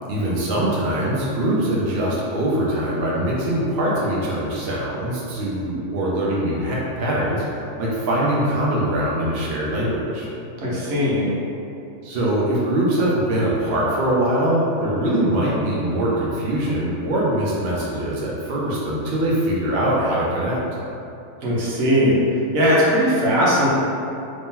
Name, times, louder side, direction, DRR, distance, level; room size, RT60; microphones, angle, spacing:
voice 1, 0.1-10.3 12.0-20.6, right 1 dB, 55° right, -6 dB, 0.8 m, -22 dB
voice 2, 10.6-11.3 21.4-22.2 22.5-23.7, equal, 75° right, -7 dB, 1.2 m, -19 dB
3.1 x 2.8 x 3.6 m, 2.7 s
omnidirectional pair, 1.4 m